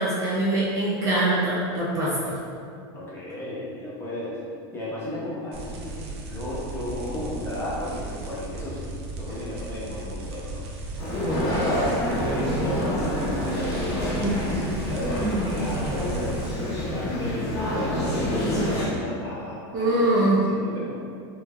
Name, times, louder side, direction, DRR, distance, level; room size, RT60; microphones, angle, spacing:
voice 1, 0.0-2.4 19.7-20.4, right 1 dB, 25° right, -6 dB, 0.4 m, -23 dB
voice 2, 2.9-4.4 4.7-8.9 9.2-10.6 11.0-20.9, left 1 dB, 20° left, -7 dB, 0.6 m, -33 dB
sound 1, 5.5-16.5, right 2 dB, 85° right, 0.5 m, -36 dB
sound 2, 11.0-18.9, equal, 50° left, 1.0 m, -27 dB
3.1 x 2.1 x 2.2 m, 2.3 s
supercardioid pair, 150°, 13 cm